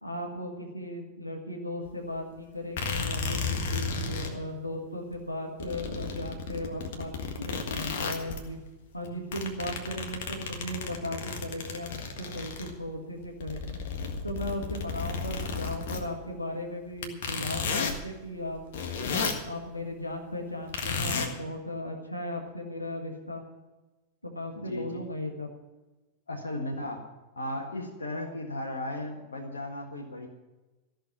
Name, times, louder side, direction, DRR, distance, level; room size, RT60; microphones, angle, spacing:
voice 1, 0.0-8.6 8.9-13.8 14.2-18.6 19.1-23.4 24.2-25.5, left 1 dB, 85° left, 1 dB, 1.8 m, -37 dB
sound 1, 1.8-1.9 2.8-4.3 5.1-5.2 5.6-8.5 9.0-12.7 13.2-16.0 17.0-18.0 18.4-19.4 20.7-21.3, left 4 dB, 55° left, 1.6 m, -33 dB
voice 2, 24.5-25.0 26.3-27.1 27.3-30.3, left 1 dB, 70° left, 1 dB, 1.7 m, -35 dB
14.5 x 6.5 x 9.6 m, 1.1 s
figure-of-eight pair, 90°, 0 cm